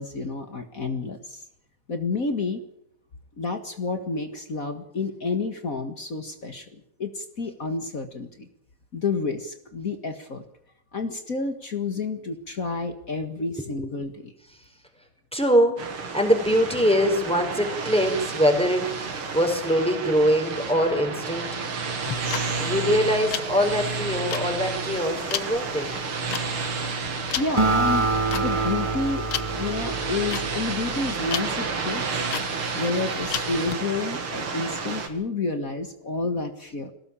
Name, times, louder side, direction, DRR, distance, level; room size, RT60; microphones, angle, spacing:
voice 1, 0.0-1.4 1.9-2.6 3.4-8.5 8.9-10.4 10.9-14.3 27.4-29.3 29.6-32.2 32.7-36.9, left 3 dB, 45° left, 7 dB, 2.0 m, -30 dB
voice 2, 15.3-19.1 19.3-21.5 22.6-25.9, equal, ahead, 3 dB, 5.4 m, -23 dB
sound 1, 15.8-35.1, right 4 dB, 85° right, 3.3 m, -31 dB
sound 2, 22.0-33.7, left 10 dB, 90° left, 2.1 m, -34 dB
Acoustic guitar, 27.6-31.2, right 3 dB, 15° right, 2.1 m, -26 dB
22.0 x 18.0 x 8.8 m, 0.72 s
omnidirectional pair, 2.3 m